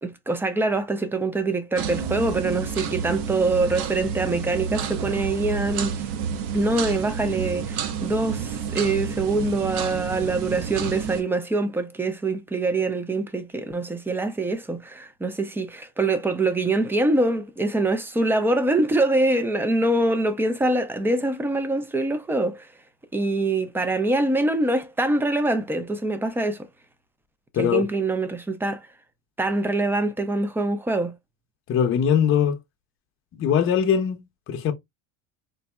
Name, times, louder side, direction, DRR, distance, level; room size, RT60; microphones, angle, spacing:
voice 1, 0.0-6.1 6.5-22.7 23.1-26.7 27.6-28.8 29.4-31.1, right 2 dB, 5° right, 0.4 m, -24 dB
sound 1, 1.7-11.2, right 7 dB, 60° right, 0.7 m, -30 dB
voice 2, 27.5-27.9 31.7-32.6 33.3-34.7, left 8 dB, 35° left, 0.7 m, -21 dB
3.9 x 2.6 x 2.2 m
supercardioid pair, 115°, 38 cm